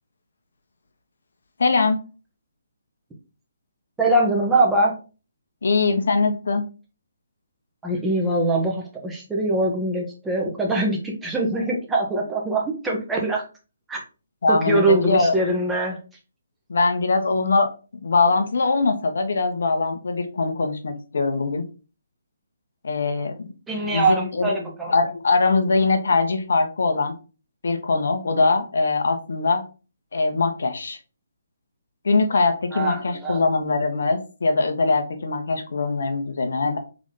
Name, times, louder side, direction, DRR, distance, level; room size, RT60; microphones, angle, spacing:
voice 1, 1.6-2.0 5.6-6.6 14.4-15.3 16.7-17.7 18.0-21.7 22.8-23.3 23.8-24.5 24.9-27.1 27.6-29.6 30.1-31.0 32.0-36.8, left 3 dB, 65° left, 6 dB, 1.1 m, -22 dB
voice 2, 4.0-5.0 7.8-13.4 13.9-14.0 14.5-16.0 23.7-24.9 32.7-33.4, right 2 dB, 10° right, -2 dB, 1.2 m, -23 dB
3.9 x 3.6 x 3.7 m, 0.34 s
figure-of-eight pair, 145°, 0 cm